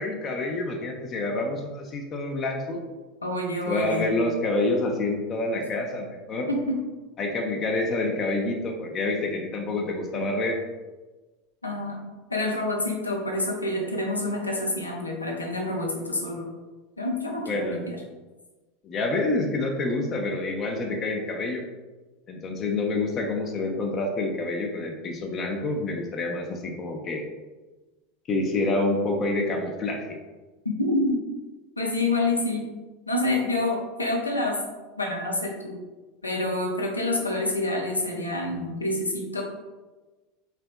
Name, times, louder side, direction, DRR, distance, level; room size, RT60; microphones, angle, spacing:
voice 1, 0.0-2.8 3.7-6.5 7.2-10.6 17.5-17.8 18.8-21.6 22.3-27.2 28.3-30.2, left 2 dB, 35° left, 1 dB, 0.5 m, -27 dB
voice 2, 3.2-4.0 6.5-6.8 11.6-12.0 12.3-16.5 17.0-18.0 30.6-31.2 31.8-32.6 33.1-34.6 35.0-35.8 36.2-39.4, left 2 dB, 90° left, 0 dB, 0.7 m, -27 dB
4.1 x 3.3 x 2.2 m, 1.2 s
figure-of-eight pair, 80°, 0 cm